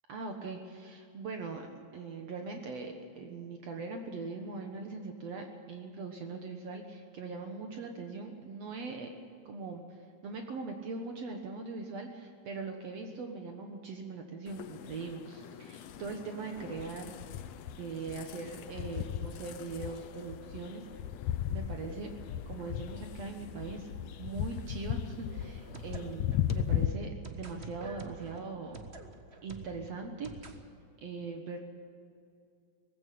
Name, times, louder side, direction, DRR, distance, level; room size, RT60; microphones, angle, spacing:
voice 1, 0.1-9.1 9.5-17.1 17.7-20.8 21.5-22.1 22.5-23.9 24.2-28.8 29.4-30.3 31.0-31.6, right 4 dB, 60° right, 4 dB, 2.3 m, -41 dB
sound 1, 14.5-26.9, left 11 dB, 70° left, 1.8 m, -37 dB
sound 2, 25.4-30.6, right 4 dB, 40° right, 0.9 m, -48 dB
19.0 x 16.0 x 8.5 m, 2.4 s
omnidirectional pair, 3.4 m